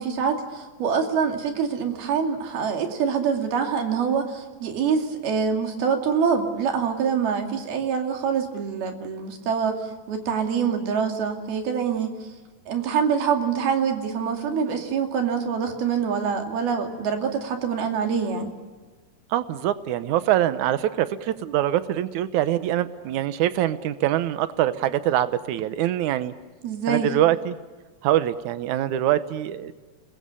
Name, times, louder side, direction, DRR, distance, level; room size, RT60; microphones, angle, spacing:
voice 1, 0.0-9.8 10.1-12.1 12.7-18.5 26.6-27.1, right 6 dB, 65° right, 4 dB, 4.4 m, -25 dB
voice 2, 19.3-26.3 26.9-27.6 28.0-29.7, right 12 dB, 85° right, 13 dB, 1.7 m, -24 dB
30.0 x 21.5 x 6.9 m, 1.3 s
omnidirectional pair, 4.7 m